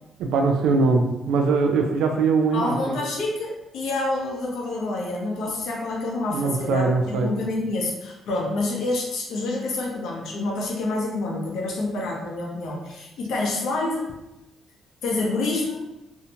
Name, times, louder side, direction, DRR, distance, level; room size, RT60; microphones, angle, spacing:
voice 1, 0.2-3.0 6.3-7.3, right 4 dB, 90° right, 3 dB, 0.4 m, -21 dB
voice 2, 2.5-14.1 15.0-15.9, left 2 dB, 80° left, -2 dB, 0.7 m, -27 dB
2.7 x 2.1 x 2.7 m, 0.94 s
cardioid pair, 90°, 0 cm